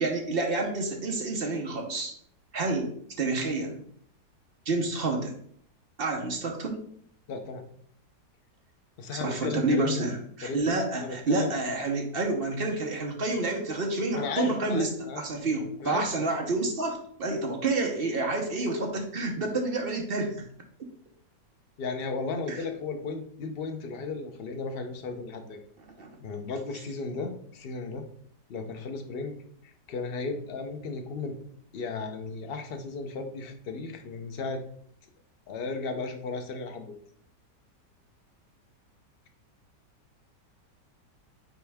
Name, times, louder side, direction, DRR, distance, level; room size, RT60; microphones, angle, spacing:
voice 1, 0.0-2.1 2.5-2.9 3.2-3.8 4.7-5.3 6.0-6.8 9.1-14.9 15.2-20.3 22.5-22.6 26.0-26.1, right 2 dB, 45° right, 2 dB, 0.8 m, -29 dB
voice 2, 7.3-7.7 9.0-10.1 10.4-11.5 14.1-15.2 15.8-16.5 21.8-25.6 26.2-28.0 28.5-29.4 29.6-31.4 31.7-34.6 35.5-37.0, left 4 dB, 60° left, 5 dB, 0.6 m, -35 dB
6.1 x 4.4 x 3.5 m, 0.62 s
omnidirectional pair, 1.9 m